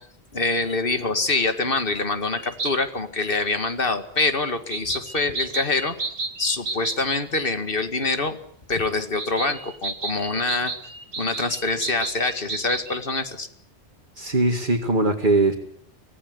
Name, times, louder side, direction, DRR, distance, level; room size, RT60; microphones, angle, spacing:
voice 1, 0.3-6.0 6.4-8.4 8.7-10.7 11.2-13.5, left 3 dB, 60° left, 9 dB, 2.2 m, -25 dB
sound 1, 2.3-2.7 3.3-3.4 4.7-7.0 9.2-13.0, right 3 dB, 90° right, 2.3 m, -32 dB
voice 2, 14.2-15.5, right 2 dB, 50° right, 0 dB, 2.5 m, -20 dB
25.0 x 18.5 x 9.6 m, 0.65 s
omnidirectional pair, 1.1 m